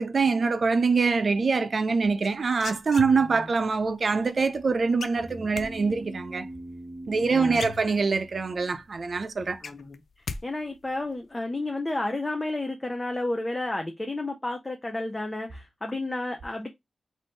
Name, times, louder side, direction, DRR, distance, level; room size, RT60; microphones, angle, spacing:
voice 1, 0.0-6.5 7.1-9.6, right 4 dB, 50° right, 0.5 m, -24 dB
sound 1, 2.2-3.5 5.0-5.7 7.1-7.2 7.5-8.3 8.7-8.8 9.2-10.4 10.7-11.1, left 5 dB, 75° left, 0.4 m, -38 dB
sound 2, 5.1-8.8, right 1 dB, 25° right, 0.9 m, -42 dB
voice 2, 7.3-7.6 9.6-10.0 10.4-16.7, left 2 dB, 20° left, 0.5 m, -31 dB
4.1 x 2.6 x 3.5 m
wide cardioid pair, 120°, 0 cm